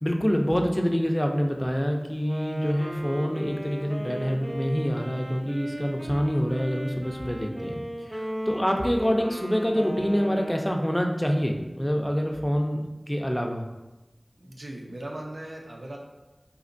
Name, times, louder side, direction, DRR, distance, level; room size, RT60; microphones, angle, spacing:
voice 1, 0.0-13.7, equal, 15° left, 2 dB, 0.5 m, -26 dB
Wind instrument woodwind instrument, 2.2-11.1, right 1 dB, 30° right, 0.6 m, -36 dB
voice 2, 14.4-16.0, right 1 dB, 80° right, -1 dB, 0.5 m, -38 dB
4.2 x 2.8 x 2.6 m, 1.1 s
wide cardioid pair, 45°, 0 cm